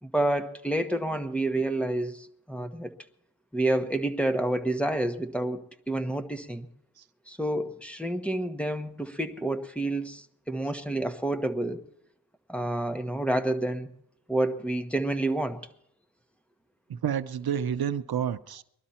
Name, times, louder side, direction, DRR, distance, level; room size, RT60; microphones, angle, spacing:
voice 1, 0.0-2.9 3.5-6.7 7.3-11.8 12.5-13.9 14.3-15.6, right 1 dB, 5° left, 1.2 m, -29 dB
voice 2, 16.9-18.6, right 8 dB, 70° right, 0.7 m, -29 dB
21.5 x 12.0 x 4.3 m
wide cardioid pair, 120°, 38 cm